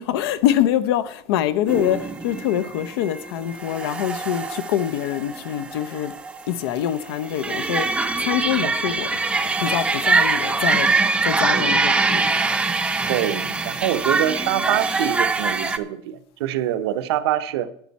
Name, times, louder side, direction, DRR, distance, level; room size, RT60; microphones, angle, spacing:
voice 1, 0.0-6.1 6.5-9.1 9.6-12.4, left 11 dB, 80° left, 0.8 m, -25 dB
sound 1, 1.7-15.8, right 3 dB, 10° right, 0.6 m, -24 dB
voice 2, 13.1-17.7, right 12 dB, 85° right, 1.0 m, -25 dB
11.5 x 10.5 x 4.2 m
supercardioid pair, 160°, 13 cm